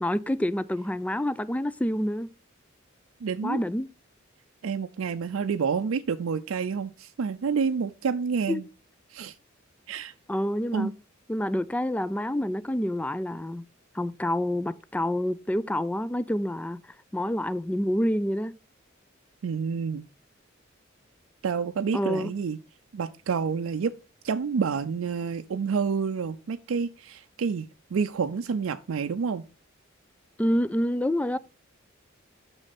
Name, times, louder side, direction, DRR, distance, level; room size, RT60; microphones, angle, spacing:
voice 1, 0.0-2.3 3.4-3.9 8.5-8.6 10.3-10.9 11.3-13.6 13.9-16.8 17.1-18.5 21.9-22.3 30.4-31.4, left 1 dB, 5° left, 0.3 m, -27 dB
voice 2, 3.2-3.6 4.6-8.7 9.1-9.3 9.9-10.1 10.7-10.9 19.4-20.1 21.4-22.6 22.9-23.9 24.2-29.4, right 5 dB, 80° right, 0.4 m, -28 dB
6.4 x 6.2 x 4.1 m
head